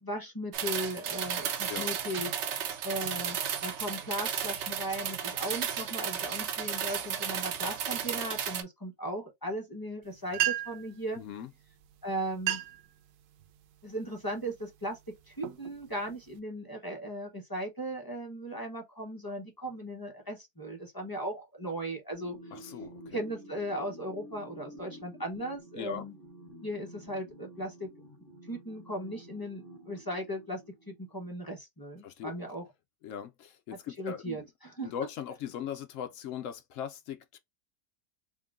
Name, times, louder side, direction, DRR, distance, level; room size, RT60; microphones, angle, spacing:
voice 1, 0.0-11.2 12.0-12.6 13.8-22.4 23.1-26.1 26.6-27.9 28.5-30.6 30.9-32.6 34.0-34.9, right 1 dB, 20° left, 0.6 m, -37 dB
sound 1, 0.5-8.6, right 8 dB, 65° right, 0.7 m, -34 dB
sound 2, 10.0-10.1 10.3-10.9 11.8-11.9 12.3-12.9 13.4-13.7 14.3-14.6 15.1-16.4, right 13 dB, 85° right, 1.1 m, -33 dB
voice 2, 11.1-11.5 22.5-23.2 25.7-26.0 32.0-32.3 33.0-34.5 34.8-37.4, left 9 dB, 70° left, 0.9 m, -39 dB
sound 3, 22.1-31.1, equal, 35° left, 1.9 m, -50 dB
3.7 x 2.2 x 3.5 m
omnidirectional pair, 1.6 m